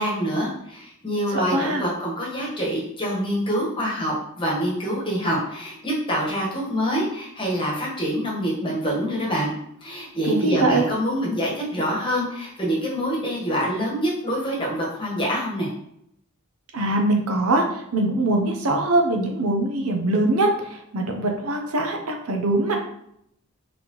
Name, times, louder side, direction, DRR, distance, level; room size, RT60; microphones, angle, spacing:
voice 1, 0.0-9.5 9.8-15.7, equal, 25° left, -4 dB, 1.2 m, -26 dB
voice 2, 1.3-1.8 10.3-10.8 16.7-22.8, right 2 dB, 80° right, 2 dB, 0.7 m, -22 dB
4.1 x 3.3 x 3.0 m, 0.73 s
head